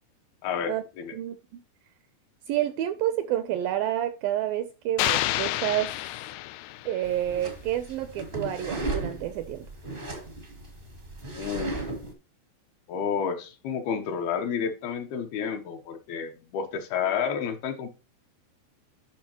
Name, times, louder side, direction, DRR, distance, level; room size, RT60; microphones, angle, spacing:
voice 1, 0.4-1.1 11.3-11.8 12.9-17.9, left 7 dB, 75° left, 2.7 m, -30 dB
voice 2, 1.1-1.6 2.5-5.9 6.9-9.7, right 12 dB, 80° right, 2.1 m, -29 dB
sound 1, 5.0-7.1, left 16 dB, 90° left, 2.7 m, -29 dB
sound 2, 7.0-12.1, right 2 dB, 50° right, 0.6 m, -36 dB
10.5 x 6.1 x 2.9 m
omnidirectional pair, 4.7 m